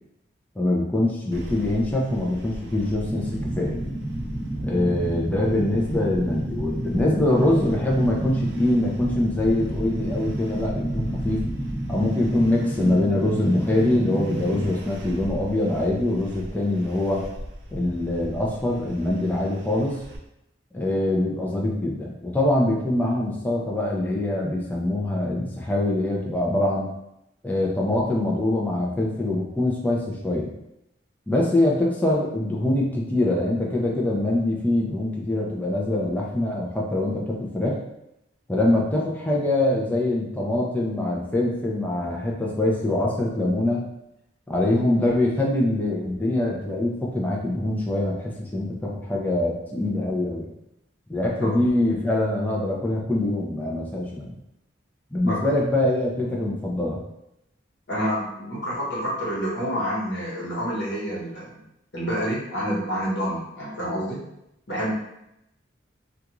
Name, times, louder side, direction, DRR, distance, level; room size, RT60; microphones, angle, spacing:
voice 1, 0.6-3.8 4.6-11.4 11.9-17.2 17.7-20.0 20.7-26.9 27.4-30.5 31.3-37.8 38.5-43.8 44.5-50.5 51.1-54.4 55.1-57.0, left 1 dB, 10° left, -3 dB, 0.4 m, -24 dB
sound 1, 1.3-20.2, equal, 65° right, 0.4 m, -38 dB
sound 2, 3.0-14.7, right 1 dB, 10° right, 0.8 m, -30 dB
voice 2, 57.9-61.6 61.9-64.2 64.7-64.9, equal, 65° left, -6 dB, 1.1 m, -28 dB
2.4 x 2.3 x 2.9 m, 0.83 s
head